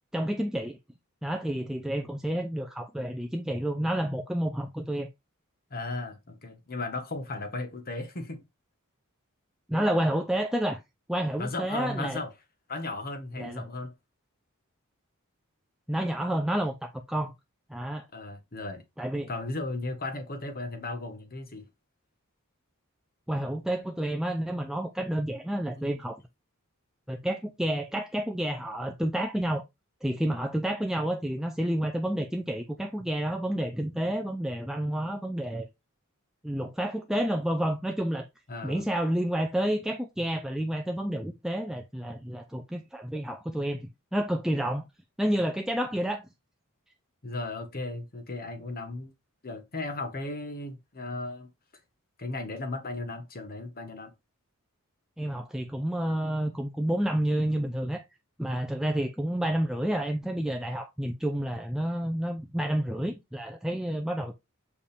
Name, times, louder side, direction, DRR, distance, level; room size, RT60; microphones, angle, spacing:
voice 1, 0.1-0.8 1.2-5.1 9.7-10.8 11.1-12.2 13.4-13.6 15.9-17.3 17.7-18.1 19.0-19.3 23.3-26.2 27.1-29.6 30.0-35.7 36.4-38.3 38.6-44.8 45.2-46.2 55.2-58.0 58.4-64.3, right 1 dB, ahead, 0.5 m, -29 dB
voice 2, 5.7-8.4 11.4-12.3 12.7-13.9 18.1-18.8 19.3-21.7 25.8-25.9 38.5-38.8 47.2-49.1 49.4-51.5 52.2-54.1, left 2 dB, 40° left, 1.3 m, -36 dB
6.8 x 5.1 x 3.4 m
head